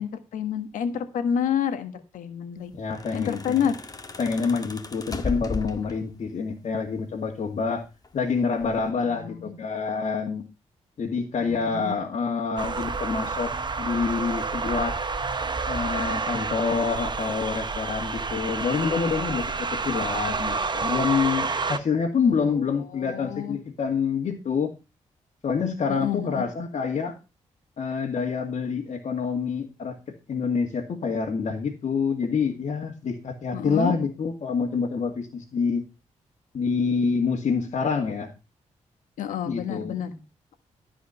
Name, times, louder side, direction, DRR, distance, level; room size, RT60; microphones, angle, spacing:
voice 1, 0.0-2.7 3.1-3.7 9.0-9.5 11.4-12.0 22.3-23.6 25.9-26.5 33.5-33.9 39.2-40.2, left 8 dB, 90° left, 1.5 m, -29 dB
voice 2, 2.7-3.4 4.2-7.8 8.1-10.4 11.0-15.0 15.7-24.7 25.4-27.2 27.8-30.0 30.3-35.8 36.5-38.3 39.5-40.0, left 5 dB, 65° left, 2.2 m, -27 dB
sound 1, 2.7-6.3 7.4-8.2 8.6-8.9, left 3 dB, 30° left, 1.6 m, -36 dB
sound 2, 12.6-21.8, right 4 dB, 35° right, 1.1 m, -29 dB
13.5 x 5.0 x 5.7 m
cardioid pair, 65°, 13 cm